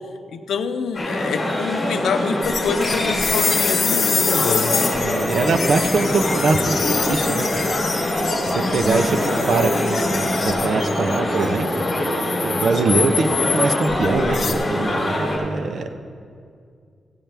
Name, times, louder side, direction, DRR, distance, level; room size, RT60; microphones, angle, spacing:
voice 1, 0.3-4.9, left 6 dB, 90° left, 9 dB, 0.6 m, -26 dB
sound 1, 0.9-15.4, left 1 dB, 25° left, 2.5 m, -24 dB
sound 2, 2.4-14.5, left 5 dB, 50° left, 0.9 m, -26 dB
sound 3, 2.8-5.8, left 1 dB, 5° right, 1.8 m, -33 dB
voice 2, 5.0-7.6 8.4-11.7 12.4-15.9, right 3 dB, 55° right, 8 dB, 0.7 m, -23 dB
15.5 x 8.8 x 3.4 m, 2.2 s
wide cardioid pair, 160°, 0 cm